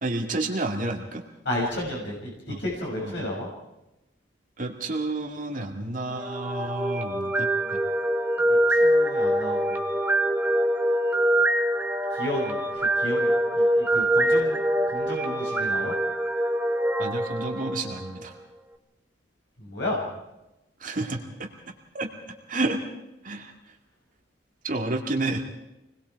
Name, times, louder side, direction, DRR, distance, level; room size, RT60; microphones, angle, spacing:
voice 1, 0.0-1.2 2.5-2.6 3.0-3.3 4.6-7.8 17.0-18.4 20.8-21.2 21.9-22.1 22.5-22.8 23.2-23.5 24.6-25.4, right 2 dB, 45° right, 2 dB, 2.2 m, -30 dB
voice 2, 1.4-2.3 2.6-3.5 8.5-9.8 12.1-13.3 13.6-14.6 14.9-15.9 19.6-20.0, left 1 dB, 70° left, -3 dB, 6.4 m, -32 dB
sound 1, 6.1-18.2, right 1 dB, 10° right, 1.4 m, -24 dB
27.0 x 20.5 x 4.7 m, 0.92 s
head